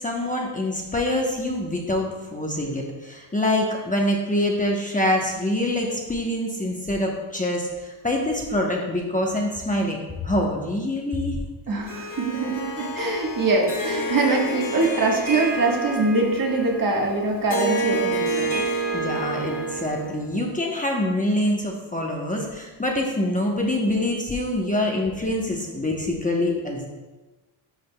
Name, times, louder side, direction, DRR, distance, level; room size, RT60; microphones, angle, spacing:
voice 1, 0.0-11.4 18.9-26.9, left 1 dB, 15° left, -1 dB, 0.9 m, -25 dB
voice 2, 11.7-18.6, right 3 dB, 45° right, -1 dB, 1.4 m, -23 dB
Harp, 11.9-20.3, right 1 dB, 45° left, 2.1 m, -29 dB
11.0 x 5.0 x 2.2 m, 1.2 s
cardioid pair, 95°, 47 cm